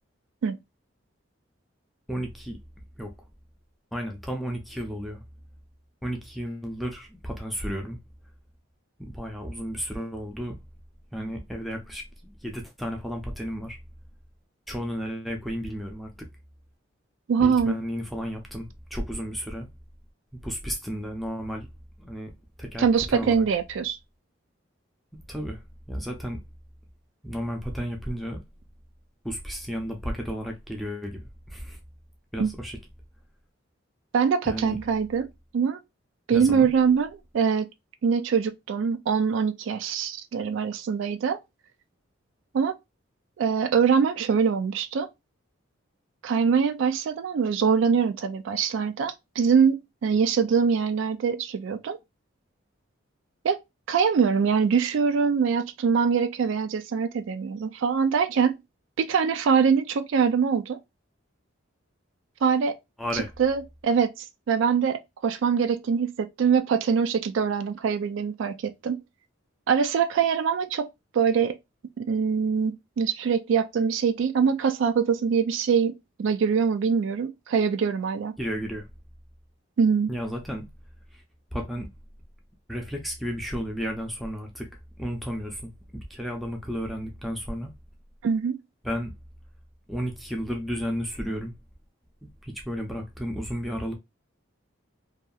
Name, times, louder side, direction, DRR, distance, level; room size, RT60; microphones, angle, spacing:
voice 1, 2.1-2.6 3.0-3.1 3.9-5.2 6.0-8.0 9.0-10.6 11.1-13.8 14.7-16.3 17.4-19.7 20.3-21.7 22.0-22.3 22.6-23.4 25.1-26.4 27.2-28.4 29.2-31.2 31.5-31.8 32.3-32.8 34.5-34.8 36.3-36.7 63.0-63.3 78.4-78.9 80.1-80.7 81.1-81.2 81.5-81.9 82.7-84.7 85.0-87.7 88.8-89.1 89.9-91.5 92.2-93.9, equal, ahead, 0.5 m, -33 dB
voice 2, 17.3-17.8 22.8-24.0 32.4-32.5 34.1-35.8 36.3-37.7 38.0-41.4 42.5-42.8 43.4-45.1 46.2-52.0 53.4-53.6 53.9-58.6 59.0-60.8 62.4-62.8 63.1-69.0 69.7-70.9 71.1-71.6 72.0-75.9 76.2-78.3 79.8-80.1 88.2-88.6, right 6 dB, 70° right, 0.3 m, -23 dB
2.7 x 2.3 x 2.3 m
head